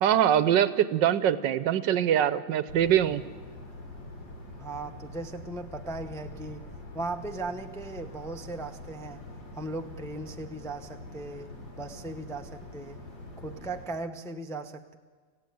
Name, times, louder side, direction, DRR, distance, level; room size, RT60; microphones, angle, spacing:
voice 1, 0.0-3.2, right 10 dB, 75° right, 14 dB, 1.5 m, -23 dB
sound 1, 2.7-13.9, left 2 dB, 85° left, 4.5 m, -44 dB
voice 2, 4.6-6.7 6.9-9.2 9.6-11.5 11.8-13.0 13.4-15.0, right 2 dB, 5° left, 5 dB, 0.6 m, -37 dB
27.0 x 15.5 x 9.4 m, 1.5 s
omnidirectional pair, 2.0 m